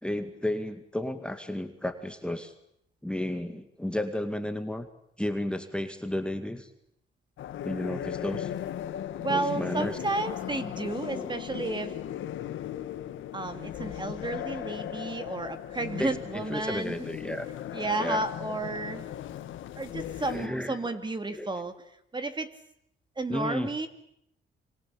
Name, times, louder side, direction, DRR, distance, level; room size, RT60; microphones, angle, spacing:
voice 1, 0.0-2.5 3.0-4.9 5.2-6.7 7.6-8.5 9.3-10.0 11.1-11.4 16.0-17.5 18.0-18.2 20.3-21.0 21.3-21.5 23.3-23.7, left 1 dB, 5° left, 7 dB, 2.1 m, -33 dB
sound 1, 7.4-20.5, left 11 dB, 80° left, 1.8 m, -37 dB
voice 2, 9.2-12.0 13.3-17.0 17.7-19.1 19.8-21.7 22.1-22.5 23.2-23.9, right 2 dB, 25° right, 8 dB, 2.6 m, -32 dB
25.5 x 24.5 x 8.8 m, 0.74 s
cardioid pair, 90°, 20 cm